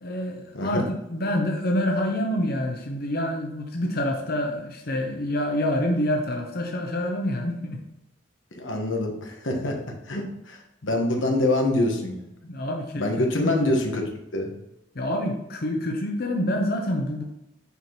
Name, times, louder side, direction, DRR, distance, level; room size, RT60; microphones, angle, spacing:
voice 1, 0.0-7.8 9.6-9.7 12.4-13.5 14.9-17.2, left 1 dB, 55° left, 1 dB, 0.7 m, -27 dB
voice 2, 0.5-0.9 8.6-9.8 10.1-10.6 10.8-12.2 13.0-14.0 14.3-14.5, left 1 dB, 90° left, 2 dB, 1.2 m, -25 dB
5.9 x 5.7 x 3.0 m, 0.88 s
head